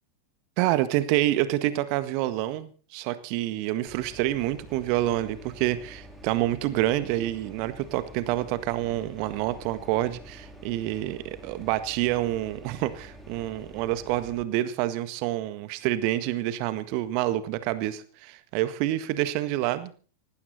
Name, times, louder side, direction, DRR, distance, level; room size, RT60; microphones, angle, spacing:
voice 1, 0.6-19.9, right 15 dB, 45° right, 13 dB, 1.7 m, -27 dB
sound 1, 3.9-14.4, right 1 dB, 5° right, 4.2 m, -47 dB
19.0 x 16.5 x 4.3 m, 0.40 s
figure-of-eight pair, 90°, 0 cm